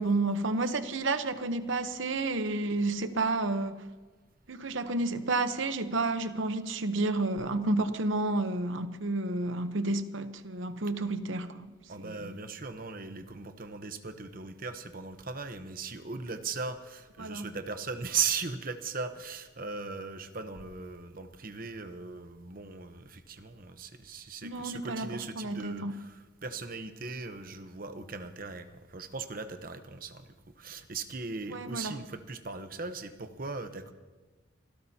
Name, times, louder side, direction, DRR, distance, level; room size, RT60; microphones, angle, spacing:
voice 1, 0.0-3.8 4.5-11.7 12.0-12.3 17.2-17.5 24.4-26.0 31.5-32.0, right 2 dB, 70° right, 0.9 m, -31 dB
voice 2, 11.9-30.3 30.6-33.9, right 5 dB, 45° right, 1.0 m, -38 dB
27.0 x 17.0 x 2.9 m
head